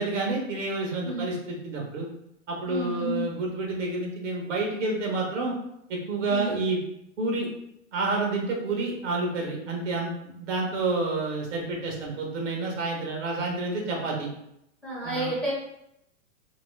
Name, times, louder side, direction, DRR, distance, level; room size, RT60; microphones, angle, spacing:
voice 1, 0.0-2.1 2.5-5.5 5.9-6.8 7.2-7.5 7.9-14.3 15.0-15.3, right 3 dB, 70° right, -1 dB, 1.3 m, -29 dB
voice 2, 2.7-3.2 6.3-6.5 14.8-15.5, right 1 dB, ahead, -8 dB, 1.0 m, -30 dB
3.0 x 2.9 x 3.2 m, 0.79 s
hypercardioid pair, 135°, 38 cm